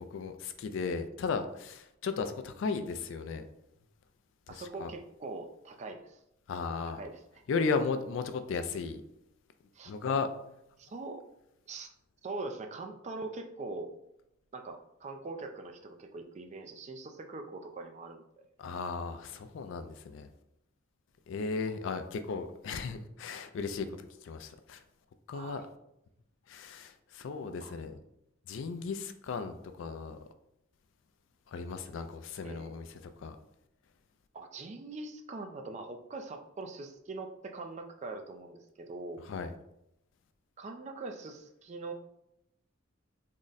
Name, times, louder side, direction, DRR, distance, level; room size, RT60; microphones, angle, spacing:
voice 1, 0.0-3.5 4.5-4.9 6.5-7.0 7.5-9.0 9.9-10.3 18.6-20.3 21.3-23.9 24.2-24.8 25.3-25.6 26.5-28.0 28.5-30.2 31.5-33.4 39.3-39.5, left 4 dB, 65° left, 9 dB, 0.3 m, -35 dB
voice 2, 4.5-6.2 7.0-7.2 9.7-9.9 10.8-11.3 11.7-11.9 12.2-13.9 14.5-18.2 25.3-25.7 27.6-27.7 32.4-32.7 34.3-39.2 40.6-41.9, right 3 dB, 35° right, 4 dB, 0.3 m, -42 dB
3.6 x 2.1 x 3.9 m, 0.81 s
head